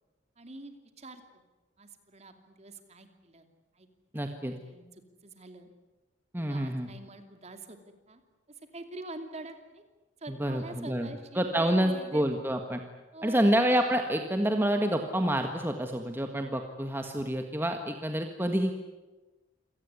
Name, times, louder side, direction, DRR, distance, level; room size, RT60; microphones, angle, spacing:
voice 1, 0.4-1.4 1.8-3.5 3.7-3.9 4.1-5.7 6.4-7.8 8.1-8.2 8.5-9.8 10.2-12.3 13.1-13.6, right 2 dB, 35° right, 7 dB, 2.9 m, -46 dB
voice 2, 4.1-4.5 6.3-6.9 10.3-11.1 11.3-12.8 13.2-18.8, right 1 dB, 10° right, 5 dB, 1.6 m, -28 dB
27.5 x 18.5 x 9.7 m, 1.2 s
head